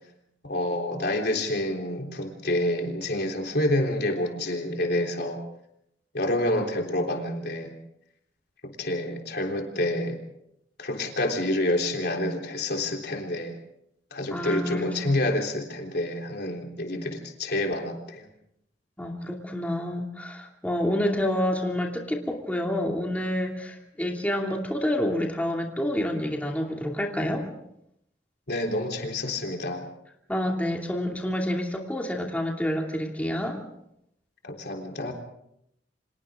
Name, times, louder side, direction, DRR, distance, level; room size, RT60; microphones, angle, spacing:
voice 1, 0.4-5.4 6.1-7.7 8.6-10.2 10.8-13.6 14.1-18.3 28.5-29.9 34.4-35.1, left 1 dB, 65° left, 1 dB, 3.6 m, -28 dB
voice 2, 14.3-15.1 19.0-27.5 30.3-33.6, left 1 dB, 10° left, 0 dB, 2.7 m, -28 dB
29.5 x 26.0 x 3.7 m, 0.78 s
head